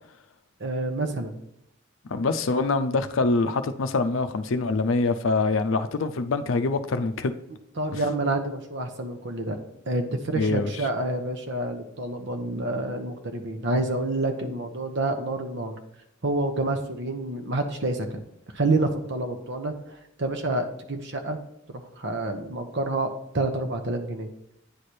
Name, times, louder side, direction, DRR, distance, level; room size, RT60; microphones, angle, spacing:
voice 1, 0.6-1.3 7.8-9.6 9.9-15.7 16.2-18.1 18.5-19.8 20.2-21.4 22.0-23.1 23.3-24.3, right 2 dB, 60° right, 6 dB, 1.0 m, -28 dB
voice 2, 2.1-7.3 7.9-8.0 10.3-10.9, left 3 dB, 70° left, 10 dB, 0.5 m, -25 dB
9.8 x 3.3 x 4.3 m, 0.81 s
head